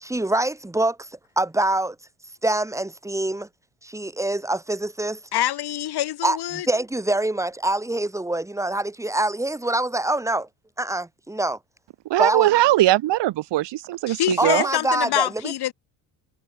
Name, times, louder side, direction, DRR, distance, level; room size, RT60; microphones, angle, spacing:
voice 1, 0.0-1.1 1.4-2.0 2.4-3.5 3.8-5.2 6.2-10.5 10.8-11.6 12.2-12.5 14.4-15.5, right 2 dB, 5° right, 1.9 m, -25 dB
voice 2, 5.3-6.7 14.1-15.7, left 13 dB, 60° left, 3.2 m, -25 dB
voice 3, 12.1-14.7, right 15 dB, 70° right, 4.4 m, -20 dB
cardioid pair, 105°, 44 cm